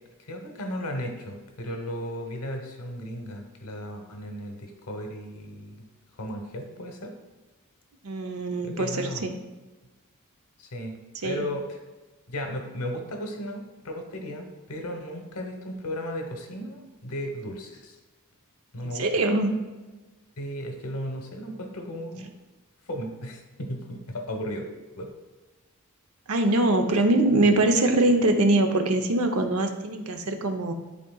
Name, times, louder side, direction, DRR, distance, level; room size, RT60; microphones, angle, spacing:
voice 1, 0.3-5.8 6.1-7.1 8.6-9.3 10.6-11.8 12.3-17.9 18.7-19.1 20.4-22.3 22.9-24.7 25.0-25.1, equal, 90° left, 3 dB, 1.0 m, -35 dB
voice 2, 8.0-9.3 11.2-11.4 18.8-19.5 26.3-30.7, right 2 dB, 75° right, 5 dB, 0.8 m, -23 dB
11.5 x 3.8 x 2.3 m, 1.2 s
head